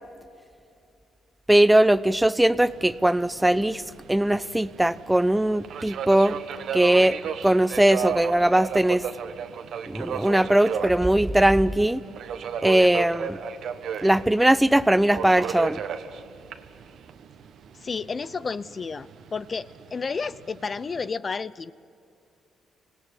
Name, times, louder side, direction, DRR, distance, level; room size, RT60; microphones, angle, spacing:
voice 1, 1.5-3.8 4.1-6.4 6.7-7.2 7.4-9.1 9.9-12.0 12.6-13.4 14.0-15.8, right 1 dB, 5° right, 17 dB, 0.6 m, -20 dB
Subway metro underground, 2.6-21.1, right 7 dB, 70° right, 1.4 m, -35 dB
voice 2, 17.8-21.7, left 5 dB, 35° left, 17 dB, 0.6 m, -31 dB
25.5 x 17.5 x 9.5 m, 2.6 s
cardioid pair, 90°, 0 cm